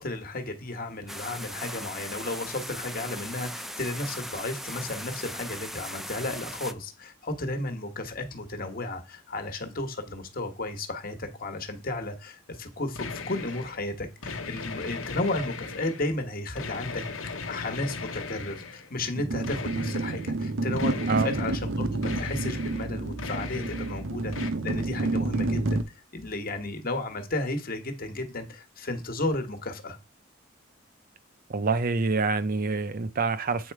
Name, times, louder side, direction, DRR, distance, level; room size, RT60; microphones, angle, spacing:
voice 1, 0.0-17.0 17.5-25.8 26.1-30.0, left 2 dB, 45° left, 1.3 m, -33 dB
sound 1, 1.1-6.7, equal, ahead, 0.5 m, -38 dB
sound 2, 13.0-13.8 14.2-16.1 16.6-18.9 19.4-20.3 20.8-21.6 22.0-22.9 23.2-24.0 24.3-24.5, left 4 dB, 75° left, 1.1 m, -38 dB
sound 3, 19.2-25.8, right 2 dB, 75° right, 0.9 m, -29 dB
voice 2, 31.5-33.7, right 4 dB, 45° right, 0.6 m, -26 dB
8.2 x 4.3 x 4.7 m
head